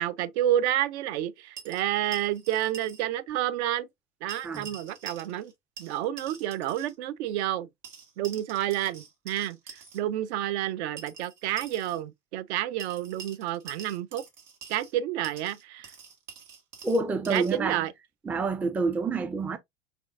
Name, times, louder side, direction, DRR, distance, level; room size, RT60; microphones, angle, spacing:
voice 1, 0.0-3.9 4.2-5.5 5.8-7.7 8.2-9.6 9.9-14.2 14.7-15.9 17.3-17.9, right 12 dB, 65° right, 0.5 m, -29 dB
sound 1, 1.6-3.0 3.3-3.4 4.3-5.5 5.8-6.9 7.8-10.0 11.0-12.0 12.8-14.9 15.2-17.6, right 6 dB, 80° right, 1.6 m, -46 dB
voice 2, 16.8-17.9 18.3-19.6, right 3 dB, 5° right, 0.3 m, -28 dB
4.3 x 3.5 x 2.4 m
hypercardioid pair, 80°, 36 cm